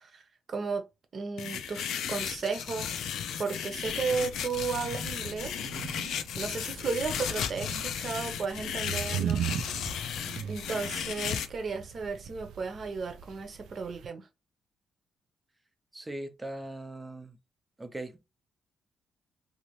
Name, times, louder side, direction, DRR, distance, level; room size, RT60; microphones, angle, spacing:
voice 1, 0.5-0.8 1.1-3.0 3.4-5.7 6.3-9.4 10.4-14.3, right 5 dB, 45° right, 0.8 m, -34 dB
sound 1, 1.4-11.5, left 8 dB, 85° left, 0.4 m, -35 dB
sound 2, 3.8-14.1, right 8 dB, 85° right, 0.4 m, -39 dB
voice 2, 15.9-17.4 17.8-18.2, right 1 dB, 15° right, 0.6 m, -40 dB
2.8 x 2.6 x 3.1 m
cardioid pair, 100°, 0 cm